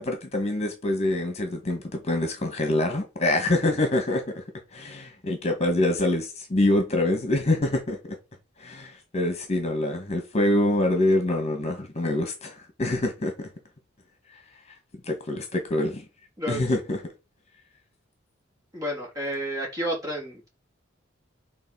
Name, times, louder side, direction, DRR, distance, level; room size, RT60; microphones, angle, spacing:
voice 1, 0.0-4.4 4.7-8.0 8.6-13.5 15.1-16.0 16.5-17.0, left 1 dB, 35° left, 1.8 m, -25 dB
voice 2, 18.7-20.5, equal, 20° right, 3.6 m, -30 dB
10.0 x 3.9 x 6.4 m
head